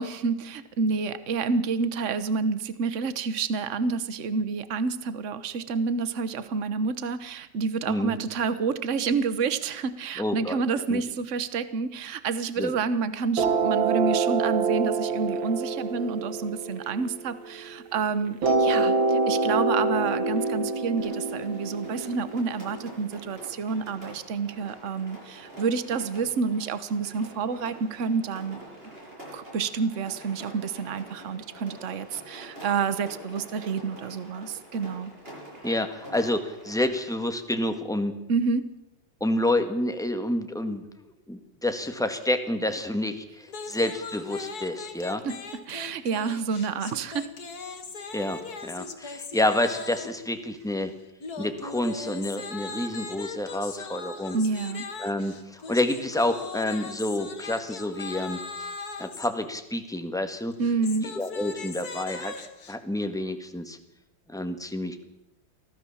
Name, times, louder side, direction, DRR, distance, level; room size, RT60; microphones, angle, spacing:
voice 1, 0.0-28.6 29.3-35.1 38.3-38.7 45.2-45.4 45.7-47.3 54.3-54.8 60.6-61.1, right 5 dB, 45° right, 14 dB, 1.3 m, -29 dB
voice 2, 7.9-8.2 10.2-10.6 10.9-11.0 12.6-12.7 35.6-38.1 39.2-40.8 41.3-45.2 48.1-50.9 51.4-54.4 55.0-58.7 59.0-60.5 61.0-62.3 62.7-63.8 64.3-65.0, left 1 dB, ahead, 7 dB, 1.5 m, -28 dB
sound 1, 13.4-17.8 18.4-23.4, right 3 dB, 85° right, 2.8 m, -26 dB
Rain, 21.0-36.8, right 1 dB, 30° right, 7.1 m, -46 dB
sound 2, 43.5-50.2 51.2-59.3 60.5-62.8, left 4 dB, 55° left, 2.2 m, -39 dB
24.0 x 16.0 x 7.3 m, 0.92 s
omnidirectional pair, 2.1 m